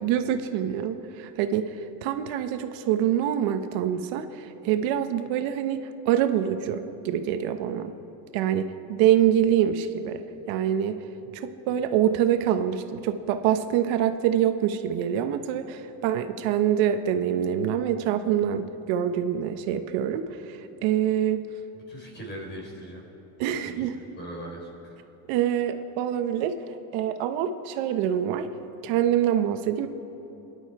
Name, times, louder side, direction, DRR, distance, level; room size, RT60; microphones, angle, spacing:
voice 1, 0.0-7.9 8.3-10.2 10.5-11.0 11.3-21.4 23.4-24.0 25.3-26.6 26.9-28.5 28.8-29.9, right 10 dB, 75° right, 8 dB, 1.0 m, -25 dB
voice 2, 21.9-23.0 23.6-25.0, equal, 25° left, 0 dB, 3.8 m, -40 dB
25.5 x 11.0 x 4.7 m, 3.0 s
cardioid pair, 145°, 47 cm